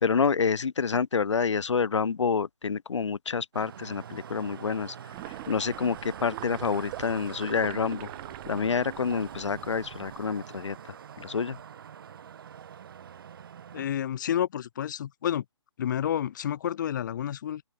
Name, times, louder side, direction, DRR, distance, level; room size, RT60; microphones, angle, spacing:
voice 1, 0.0-4.9 5.2-8.1 8.5-10.8 11.2-11.6, left 5 dB, 75° left, 1.0 m, -28 dB
sound 1, 3.5-13.9, right 8 dB, 50° right, 5.1 m, -44 dB
sound 2, 5.1-10.2, right 40 dB or more, 15° right, 0.6 m, -44 dB
voice 2, 13.7-15.4 15.8-17.6, left 10 dB, 40° left, 1.2 m, -30 dB
open air
hypercardioid pair, 155°, 15 cm